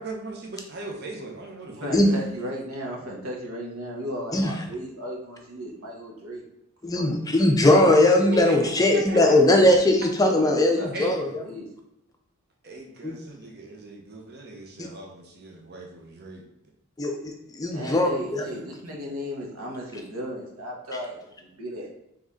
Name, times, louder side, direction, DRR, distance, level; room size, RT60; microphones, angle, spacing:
voice 1, 0.0-2.2 8.3-9.4 10.9-11.3 12.6-16.4, right 2 dB, 50° right, 0 dB, 1.0 m, -39 dB
voice 2, 1.8-6.4 6.9-7.1 10.5-11.2 11.4-11.7 17.7-21.9, equal, 80° right, -2 dB, 1.4 m, -35 dB
voice 3, 6.8-11.2 13.0-13.1 17.0-18.1, left 1 dB, 15° left, 3 dB, 0.4 m, -19 dB
4.0 x 3.5 x 3.6 m, 0.85 s
head